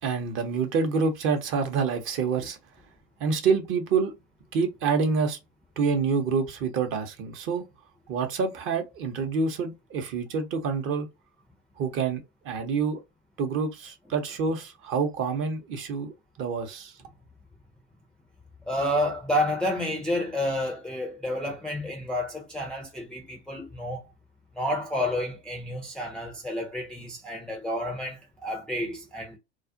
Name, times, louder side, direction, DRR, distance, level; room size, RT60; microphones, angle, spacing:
voice 1, 0.0-2.6 3.2-4.1 4.5-5.4 5.8-7.6 8.1-11.1 11.8-12.2 12.4-13.0 13.4-16.9, right 5 dB, 35° right, 0.7 m, -27 dB
voice 2, 18.7-24.0 24.6-29.4, left 1 dB, ahead, 0.5 m, -30 dB
2.4 x 2.1 x 2.5 m
hypercardioid pair, 90°, 35 cm